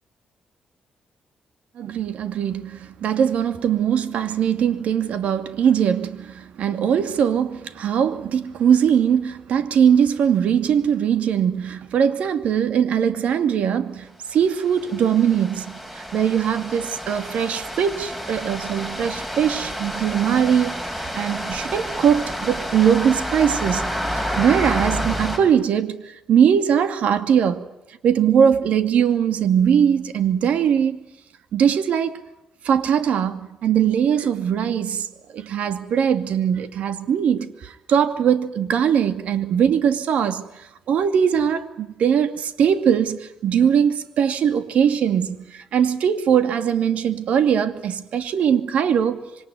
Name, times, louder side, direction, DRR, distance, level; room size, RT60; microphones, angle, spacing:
voice 1, 1.8-20.8 21.1-23.9 24.2-27.6 28.0-31.0 31.5-32.2 32.6-35.1 35.3-40.4 40.9-49.2, right 8 dB, 75° right, 2.5 m, -21 dB
sound 1, 14.5-25.4, equal, 10° right, 6.2 m, -29 dB
26.5 x 23.5 x 9.5 m
cardioid pair, 105°, 2 cm